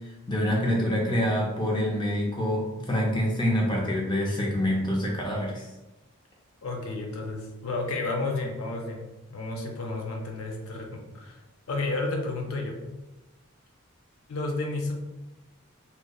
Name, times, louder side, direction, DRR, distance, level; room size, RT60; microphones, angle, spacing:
voice 1, 0.3-5.7, equal, 20° left, -2 dB, 0.5 m, -26 dB
voice 2, 6.6-12.8 14.3-14.9, left 2 dB, 85° left, 2 dB, 0.5 m, -32 dB
2.7 x 2.1 x 2.2 m, 1.0 s
head